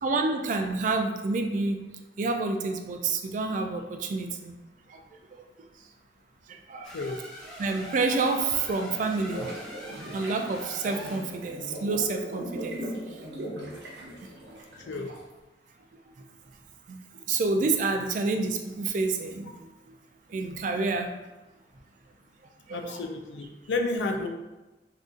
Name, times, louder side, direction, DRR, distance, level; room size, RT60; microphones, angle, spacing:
voice 1, 0.0-1.8 2.2-4.5 4.9-5.0 6.5-6.9 7.6-9.5 10.1-12.8 14.5-14.6 14.9-15.0 16.9-17.0 17.3-19.5 20.3-21.1 22.7-23.0, right 3 dB, 45° right, 4 dB, 0.3 m, -28 dB
sound 1, 6.8-11.3, right 1 dB, 5° left, 0.9 m, -43 dB
voice 2, 6.9-7.2 14.8-15.1 22.7-24.3, left 3 dB, 85° left, 4 dB, 0.4 m, -31 dB
sound 2, 8.6-15.3, right 1 dB, 80° right, 0.8 m, -39 dB
2.6 x 2.4 x 3.6 m, 1.1 s
head